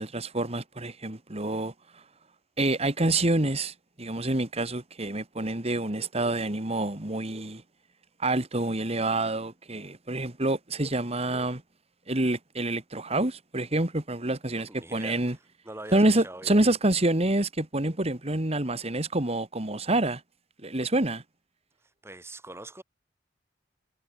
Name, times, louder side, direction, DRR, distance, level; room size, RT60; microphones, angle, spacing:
voice 1, 0.0-2.0 2.6-7.6 8.2-11.6 12.1-15.4 15.9-20.2 20.6-21.2, right 2 dB, 35° right, 2.2 m, -27 dB
voice 2, 14.5-15.2 15.7-16.6 22.0-22.8, right 1 dB, 15° right, 2.2 m, -42 dB
head